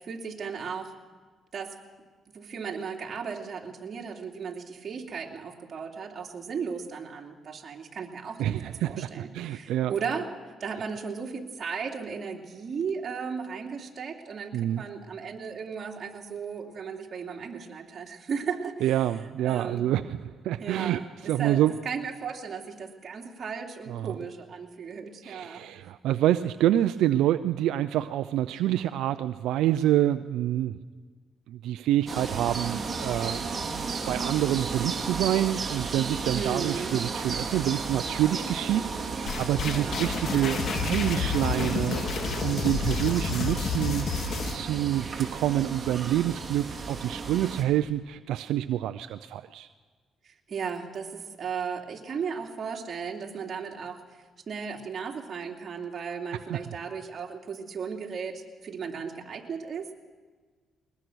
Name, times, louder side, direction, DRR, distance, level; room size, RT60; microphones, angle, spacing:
voice 1, 0.0-0.9 1.5-1.7 2.3-10.3 10.6-19.0 19.4-19.9 20.6-25.8 36.3-36.9 39.6-40.0 50.2-54.0 54.5-59.9, right 6 dB, 50° right, 0 dB, 2.9 m, -36 dB
voice 2, 8.4-9.9 14.5-14.8 18.8-20.2 20.4-21.8 23.9-24.2 25.2-30.8 31.5-42.0 42.4-49.7 56.5-56.7, right 12 dB, 85° right, 10 dB, 0.5 m, -27 dB
sound 1, 32.1-47.6, right 4 dB, 35° right, 3.4 m, -34 dB
sound 2, 39.3-44.6, left 5 dB, 60° left, 2.0 m, -30 dB
21.5 x 20.5 x 6.3 m, 1.5 s
cardioid pair, 90°, 0 cm